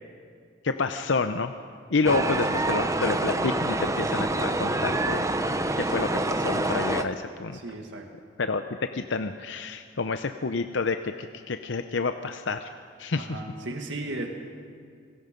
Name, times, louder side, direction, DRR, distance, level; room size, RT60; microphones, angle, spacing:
voice 1, 0.6-1.5 1.9-5.3 5.8-7.6 8.4-8.6 8.9-12.7 13.0-13.4, left 4 dB, 75° left, 8 dB, 0.7 m, -29 dB
sound 1, 2.0-7.0, right 2 dB, 15° right, 0.8 m, -26 dB
voice 2, 2.0-2.4 7.5-8.1 13.2-14.3, right 2 dB, 75° right, 3 dB, 2.0 m, -36 dB
27.5 x 20.5 x 5.3 m, 2.2 s
head